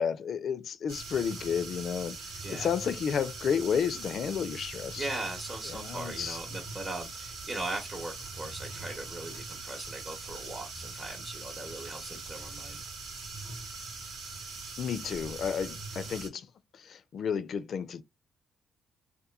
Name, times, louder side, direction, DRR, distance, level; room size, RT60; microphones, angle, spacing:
voice 1, 0.0-5.1 5.7-6.4 14.8-16.5 16.7-18.0, left 7 dB, 60° left, 0.3 m, -32 dB
sound 1, 0.9-16.3, right 3 dB, 80° right, 0.9 m, -42 dB
voice 2, 2.4-2.7 5.0-12.8, right 2 dB, 35° right, 0.7 m, -39 dB
2.9 x 2.2 x 2.2 m
cardioid pair, 90°, 0 cm